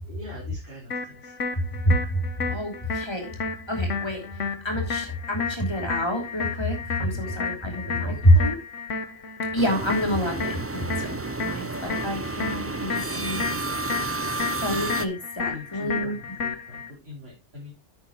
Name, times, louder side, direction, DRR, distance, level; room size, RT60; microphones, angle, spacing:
voice 1, 0.0-1.5 7.0-7.4 8.0-8.5 15.4-17.7, left 1 dB, 55° right, -6 dB, 4.2 m, -42 dB
sound 1, 0.9-16.9, left 5 dB, 80° left, 1.6 m, -33 dB
voice 2, 1.8-2.2 2.5-3.3 3.7-4.2 4.6-8.6 9.5-13.4 14.6-16.2, equal, 20° left, 1 dB, 3.1 m, -26 dB
sound 2, 9.6-15.1, right 3 dB, 20° right, 0.4 m, -31 dB
10.0 x 8.5 x 3.0 m, 0.23 s
omnidirectional pair, 1.2 m